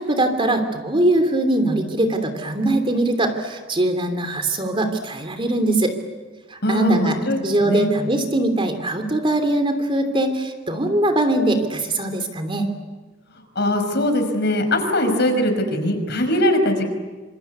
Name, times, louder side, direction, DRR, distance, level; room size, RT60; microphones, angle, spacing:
voice 1, 0.0-5.9 6.5-7.2 7.4-12.7, right 1 dB, 30° right, 7 dB, 3.1 m, -21 dB
voice 2, 6.6-7.9 13.3-16.9, left 1 dB, 60° left, 6 dB, 5.5 m, -21 dB
26.5 x 26.0 x 8.3 m, 1.3 s
head